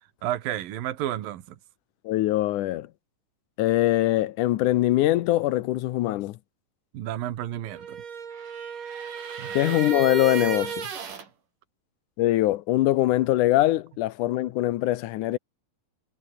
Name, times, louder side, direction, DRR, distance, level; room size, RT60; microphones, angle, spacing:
voice 1, 0.2-1.4 6.9-8.0 9.4-9.5, right 12 dB, 80° right, 3.2 m, -31 dB
voice 2, 2.0-2.9 3.6-6.4 9.5-10.9 12.2-15.4, left 15 dB, 70° left, 2.2 m, -23 dB
sound 1, 7.7-11.3, right 7 dB, 65° right, 5.0 m, -33 dB
omnidirectional pair, 4.0 m